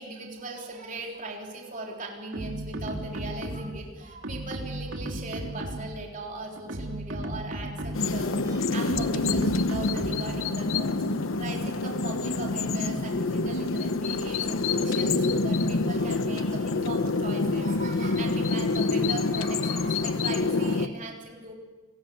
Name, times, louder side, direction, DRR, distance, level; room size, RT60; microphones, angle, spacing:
voice 1, 0.0-21.5, right 2 dB, 40° right, 0 dB, 3.6 m, -39 dB
sound 1, 2.3-3.9 4.2-6.0 6.6-8.2 8.9-10.4, right 1 dB, 85° right, 2.3 m, -35 dB
sound 2, 7.9-20.9, left 3 dB, 85° left, 1.0 m, -27 dB
29.5 x 18.5 x 7.9 m, 1.3 s
head